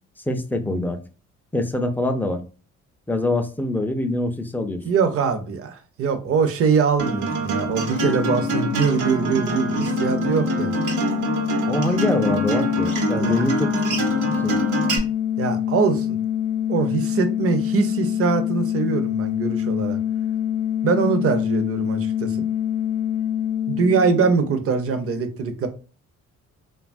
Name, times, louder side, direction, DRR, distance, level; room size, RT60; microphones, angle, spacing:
voice 1, 0.3-1.0 1.5-2.4 3.1-4.8 11.7-14.6, left 1 dB, 5° left, 0.3 m, -24 dB
voice 2, 4.8-10.7 13.2-13.4 15.4-16.2 16.7-20.0 20.8-22.5 23.7-25.7, right 5 dB, 50° right, 0.6 m, -23 dB
Acoustic guitar, 7.0-15.0, right 2 dB, 80° right, 0.8 m, -25 dB
sound 1, 7.3-24.8, left 10 dB, 60° left, 0.7 m, -26 dB
2.8 x 2.2 x 2.5 m
cardioid pair, 90°, 30 cm